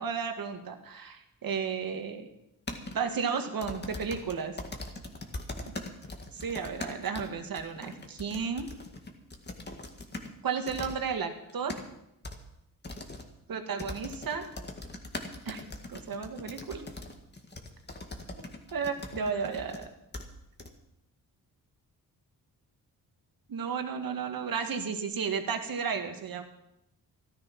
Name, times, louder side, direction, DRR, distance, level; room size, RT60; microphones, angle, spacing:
voice 1, 0.0-2.3 2.9-4.6 6.3-8.7 10.4-11.8 13.5-14.5 15.5-16.9 18.7-19.9 23.5-26.4, right 6 dB, 65° right, 6 dB, 2.0 m, -33 dB
sound 1, 2.7-3.0 3.6-10.3 10.7-11.0 11.4-11.8 12.2-12.4 12.8-13.2 13.8-19.9 20.1-20.2 20.6-20.7, left 2 dB, 30° left, 2.0 m, -41 dB
14.0 x 12.5 x 6.0 m, 0.82 s
cardioid pair, 90°, 37 cm